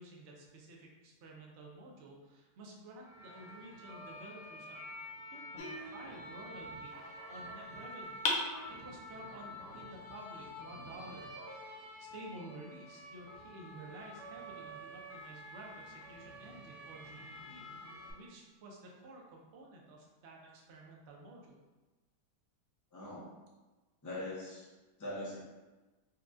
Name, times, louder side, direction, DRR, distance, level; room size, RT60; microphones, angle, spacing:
voice 1, 0.0-4.8 5.3-8.2 8.7-17.7 18.1-21.6, right 2 dB, 70° right, -2 dB, 0.6 m, -52 dB
sound 1, 3.0-18.1, equal, 90° left, 1.4 m, -48 dB
sound 2, 5.6-6.7 8.2-9.3, left 3 dB, 70° left, 0.8 m, -38 dB
voice 2, 22.9-23.2 24.0-24.7 25.0-25.4, left 1 dB, 25° left, -7 dB, 0.4 m, -41 dB
4.1 x 2.2 x 2.5 m, 1.2 s
omnidirectional pair, 1.8 m